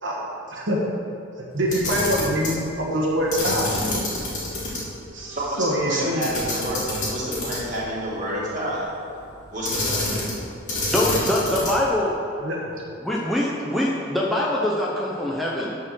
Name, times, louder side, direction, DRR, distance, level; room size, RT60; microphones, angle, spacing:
voice 1, 1.4-3.7 5.1-6.2 12.4-12.7, equal, 60° right, -3 dB, 1.3 m, -24 dB
Camera, 1.6-2.6 3.3-4.8 5.1-5.2 6.2-7.8 9.6-10.4 10.7-11.9, left 2 dB, 35° left, 2.4 m, -27 dB
voice 2, 5.3-6.8 7.1-8.9 9.5-10.1, right 1 dB, 35° right, -7 dB, 2.3 m, -29 dB
voice 3, 10.9-12.1 13.0-15.8, left 1 dB, ahead, -5 dB, 0.6 m, -23 dB
10.0 x 4.4 x 6.3 m, 2.6 s
head